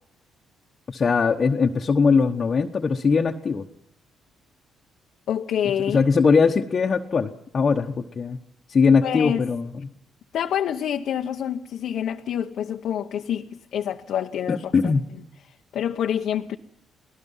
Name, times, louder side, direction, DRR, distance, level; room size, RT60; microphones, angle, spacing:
voice 1, 0.9-3.7 5.9-8.4 8.7-9.9 14.5-15.0, left 5 dB, 40° left, 1.1 m, -21 dB
voice 2, 5.3-6.0 9.0-9.4 10.3-14.9 15.7-16.6, left 9 dB, 75° left, 0.9 m, -27 dB
30.0 x 18.5 x 5.6 m
cardioid pair, 90°, 0 cm